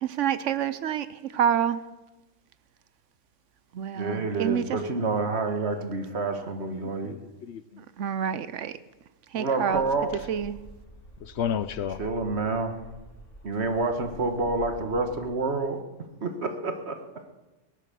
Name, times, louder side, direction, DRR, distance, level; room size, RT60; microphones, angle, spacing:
voice 1, 0.0-1.8 3.7-4.6 7.8-8.7 9.3-9.8 10.3-10.6, right 9 dB, 75° right, 14 dB, 1.1 m, -28 dB
voice 2, 3.9-7.2 9.3-10.1 12.0-12.8 13.4-15.8 16.2-17.0, right 3 dB, 60° right, 6 dB, 1.8 m, -28 dB
voice 3, 6.8-7.8 11.2-12.0, left 8 dB, 65° left, 14 dB, 0.9 m, -32 dB
sound 1, 9.7-15.2, equal, 45° left, 2.8 m, -47 dB
18.0 x 11.0 x 6.9 m, 1.1 s
omnidirectional pair, 1.3 m